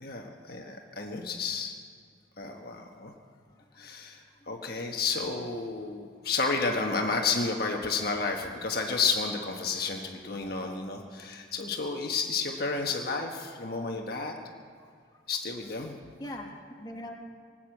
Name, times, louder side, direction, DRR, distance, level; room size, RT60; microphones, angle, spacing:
voice 1, 0.0-1.7 2.4-3.1 3.8-14.3 15.3-16.0, left 4 dB, 55° left, 1 dB, 1.4 m, -31 dB
voice 2, 4.4-4.8 14.8-14.9 15.9-17.1, left 1 dB, 25° left, 0 dB, 1.7 m, -43 dB
19.5 x 9.1 x 7.8 m, 2.2 s
head